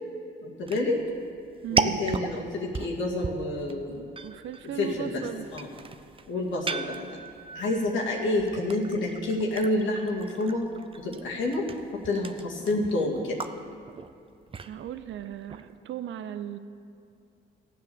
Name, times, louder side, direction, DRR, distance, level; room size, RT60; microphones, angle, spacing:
voice 1, 0.4-1.0 1.7-4.0 4.8-5.2 5.5-5.7 6.3-7.2 7.5-10.7 11.0-11.6 11.9-13.4, left 2 dB, 75° left, -3 dB, 2.1 m, -28 dB
sound 1, 0.6-15.8, right 5 dB, 25° right, 0.6 m, -36 dB
voice 2, 1.6-2.0 4.2-5.5 14.7-16.6, right 10 dB, 70° right, 11 dB, 0.7 m, -36 dB
15.0 x 8.3 x 7.0 m, 2.5 s
cardioid pair, 90°, 20 cm